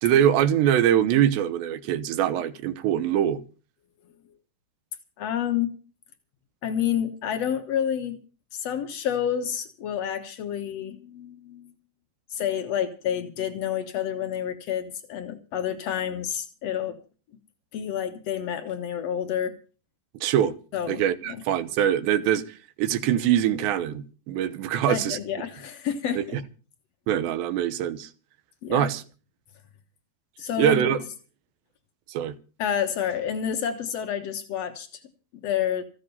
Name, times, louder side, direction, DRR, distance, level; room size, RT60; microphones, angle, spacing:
voice 1, 0.0-3.4 20.2-20.5 20.9-22.4 22.8-25.2 26.3-26.4 27.1-28.1 28.7-29.0 30.6-31.0 32.1-32.3, right 10 dB, 85° right, 3.3 m, -23 dB
voice 2, 5.2-5.8 6.6-8.2 8.5-11.7 12.3-17.0 17.7-19.5 20.7-21.4 24.9-26.4 28.6-28.9 30.4-30.9 32.6-35.0 35.4-35.8, left 9 dB, 85° left, 1.4 m, -29 dB
15.0 x 12.5 x 5.5 m
omnidirectional pair, 4.9 m